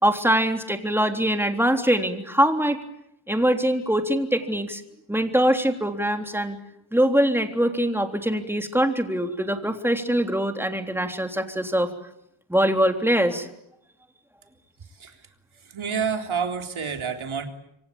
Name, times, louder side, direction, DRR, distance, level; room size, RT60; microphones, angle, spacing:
voice 1, 0.0-2.8 3.3-4.8 5.1-6.6 6.9-11.9 12.5-13.5, equal, 5° right, 5 dB, 3.5 m, -23 dB
voice 2, 14.8-15.2 15.5-17.5, right 6 dB, 80° right, 5 dB, 3.8 m, -29 dB
26.5 x 25.0 x 8.7 m, 0.77 s
wide cardioid pair, 85°, 48 cm